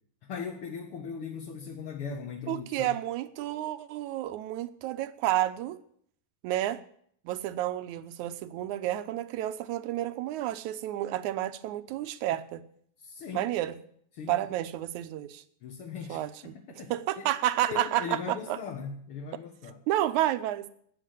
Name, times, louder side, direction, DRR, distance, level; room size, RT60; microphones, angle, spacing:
voice 1, 0.2-2.9 13.0-13.5 14.2-14.4 15.6-16.2 16.7-16.9 17.2-17.3 17.7-19.8, left 6 dB, 50° left, 1 dB, 2.0 m, -38 dB
voice 2, 2.5-5.8 6.4-6.8 7.3-12.6 13.3-13.8 14.3-15.4 16.1-18.6 19.9-20.7, right 13 dB, 75° right, 12 dB, 2.1 m, -30 dB
13.5 x 9.0 x 10.0 m, 0.64 s
omnidirectional pair, 3.7 m